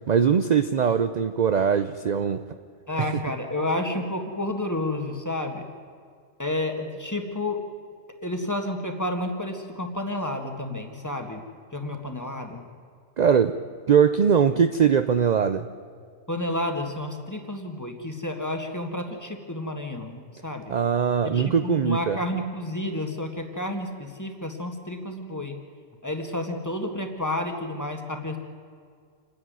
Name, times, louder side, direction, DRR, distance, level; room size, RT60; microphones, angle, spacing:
voice 1, 0.1-2.4 3.0-3.1 13.2-13.6 13.9-15.7 20.7-22.2, right 7 dB, 50° right, 10 dB, 0.6 m, -21 dB
voice 2, 2.9-5.7 6.4-7.6 8.2-11.4 11.7-12.6 16.3-20.7 21.2-25.6 26.0-28.4, left 1 dB, 15° left, 4 dB, 1.7 m, -30 dB
27.5 x 10.5 x 9.5 m, 2.1 s
omnidirectional pair, 1.2 m